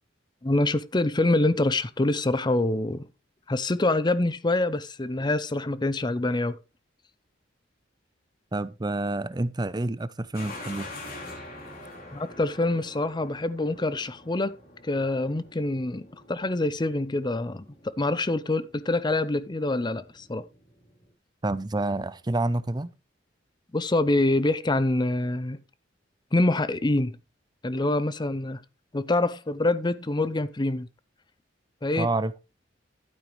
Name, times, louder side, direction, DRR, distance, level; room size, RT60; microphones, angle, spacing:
voice 1, 0.4-3.1 3.5-6.6 12.1-14.6 14.8-20.4 23.7-25.6 26.3-27.2 27.6-28.6 28.9-30.9 31.8-32.1, left 2 dB, 25° left, 0.6 m, -25 dB
voice 2, 8.5-10.9 21.4-22.9 32.0-32.3, right 2 dB, 20° right, 0.6 m, -28 dB
sound 1, 10.3-21.1, left 2 dB, 50° left, 3.5 m, -46 dB
12.0 x 9.0 x 3.2 m
head